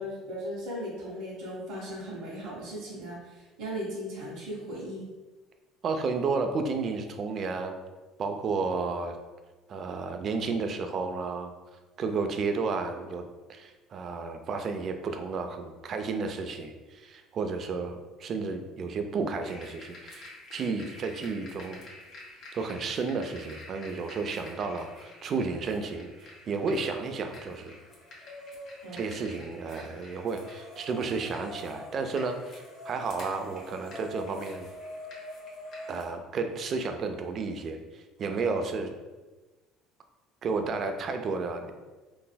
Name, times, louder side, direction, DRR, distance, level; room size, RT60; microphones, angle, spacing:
voice 1, 0.0-5.1 28.8-29.0, equal, 80° right, -7 dB, 0.9 m, -37 dB
voice 2, 5.8-7.8 8.2-9.2 9.7-11.5 12.0-13.2 13.5-21.8 22.5-27.7 28.9-34.7 35.9-38.9 40.4-41.7, right 4 dB, 45° right, 6 dB, 0.4 m, -32 dB
sound 1, 19.4-36.0, left 1 dB, 55° left, 1.0 m, -46 dB
3.9 x 2.5 x 2.2 m, 1.2 s
supercardioid pair, 95°, 0 cm